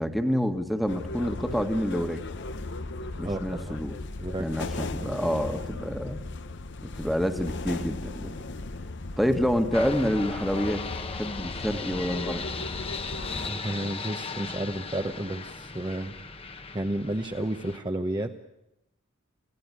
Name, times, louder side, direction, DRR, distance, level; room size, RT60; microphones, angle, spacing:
voice 1, 0.0-2.2 3.2-4.0 4.4-6.2 6.8-8.3 9.2-10.9 11.2-12.5, equal, ahead, 6 dB, 1.6 m, -28 dB
sound 1, 0.9-13.5, left 2 dB, 60° left, 1.0 m, -37 dB
voice 2, 3.2-3.8 4.2-4.5 5.0-5.1 13.4-16.1 16.7-18.4, right 1 dB, 20° right, 4 dB, 0.9 m, -32 dB
sound 2, 9.7-17.8, left 4 dB, 25° left, 1.2 m, -37 dB
28.5 x 16.5 x 9.8 m, 0.90 s
head